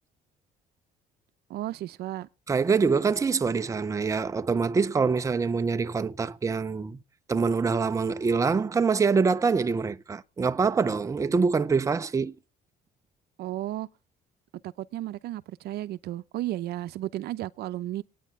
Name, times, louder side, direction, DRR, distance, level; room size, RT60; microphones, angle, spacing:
voice 1, 1.5-2.3 13.4-13.9 14.6-18.0, right 14 dB, 70° right, 0.6 m, -33 dB
voice 2, 2.5-7.0 7.3-12.3, right 5 dB, 20° right, 0.6 m, -25 dB
23.0 x 9.4 x 3.6 m
cardioid pair, 110°, 17 cm